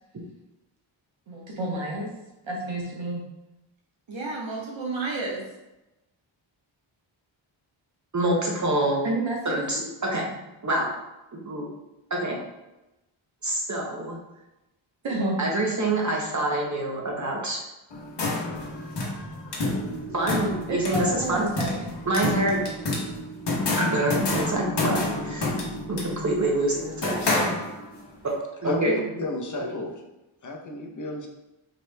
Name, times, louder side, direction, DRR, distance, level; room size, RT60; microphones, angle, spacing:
voice 1, 1.3-2.1 2.5-3.2 4.1-5.4 9.0-9.9 15.0-15.4 20.7-21.9, right 2 dB, 65° right, -2 dB, 1.1 m, -30 dB
voice 2, 8.1-9.0 9.5-10.3 10.6-10.9 11.3-11.6 12.1-12.3 13.4-14.2 15.4-17.6 20.1-21.4 22.1-22.6 23.8-25.5 25.9-27.5 28.6-29.0 29.6-29.7, right 1 dB, 35° right, -2 dB, 0.7 m, -26 dB
sound 1, 17.9-28.1, left 2 dB, 55° left, 1.0 m, -29 dB
voice 3, 28.6-29.9 30.4-31.3, left 2 dB, 40° left, 1 dB, 0.7 m, -32 dB
5.1 x 2.9 x 2.2 m, 0.97 s
wide cardioid pair, 105°, 49 cm